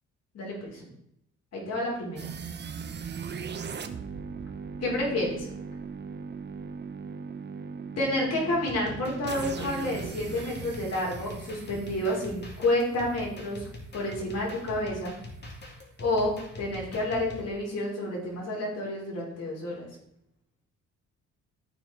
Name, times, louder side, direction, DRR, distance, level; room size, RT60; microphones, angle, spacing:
voice 1, 0.3-0.8 1.5-2.2 4.8-5.5 8.0-15.1 16.0-19.9, left 1 dB, 55° left, -3 dB, 3.8 m, -30 dB
sound 1, 2.2-13.1, right 5 dB, 35° right, 0.8 m, -39 dB
sound 2, 8.6-17.5, left 1 dB, 35° left, 2.3 m, -44 dB
13.0 x 4.7 x 4.0 m, 0.75 s
cardioid pair, 90°, 30 cm